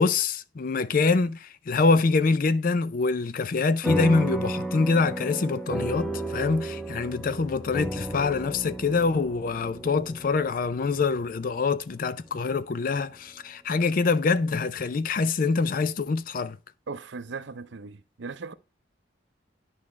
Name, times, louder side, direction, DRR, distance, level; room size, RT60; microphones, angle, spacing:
voice 1, 0.0-16.6, left 4 dB, 45° left, 0.4 m, -25 dB
sound 1, 3.8-12.6, right 1 dB, ahead, 0.7 m, -33 dB
voice 2, 16.9-18.5, right 4 dB, 65° right, 0.6 m, -38 dB
10.5 x 4.8 x 3.1 m
head